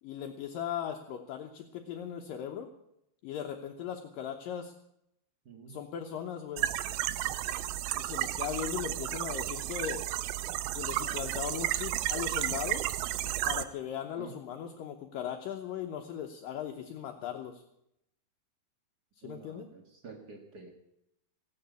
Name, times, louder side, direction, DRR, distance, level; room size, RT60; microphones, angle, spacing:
voice 1, 0.0-2.7 3.2-4.7 5.7-6.7 8.0-10.1 10.7-12.9 13.5-17.6 19.2-19.7, left 9 dB, 70° left, 3 dB, 2.4 m, -38 dB
voice 2, 5.4-5.8 14.2-14.4 19.2-20.7, right 5 dB, 65° right, 2 dB, 1.0 m, -49 dB
sound 1, 6.6-13.6, right 14 dB, 80° right, 2.4 m, -33 dB
16.0 x 9.8 x 8.2 m, 0.79 s
omnidirectional pair, 4.5 m